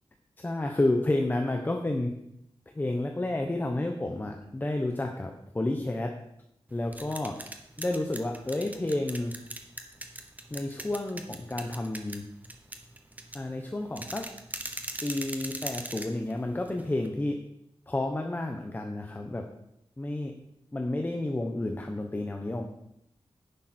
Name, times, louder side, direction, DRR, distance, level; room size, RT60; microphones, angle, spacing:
voice 1, 0.4-2.1 2.7-6.1 6.7-7.4 7.8-9.3 10.5-12.2 13.3-14.3 15.0-17.4 17.9-19.4 20.0-20.3 20.7-22.7, left 2 dB, 20° left, 3 dB, 0.9 m, -30 dB
sound 1, 6.7-17.1, right 1 dB, 15° right, 1.1 m, -41 dB
11.0 x 10.0 x 4.4 m, 0.79 s
wide cardioid pair, 145°, 10 cm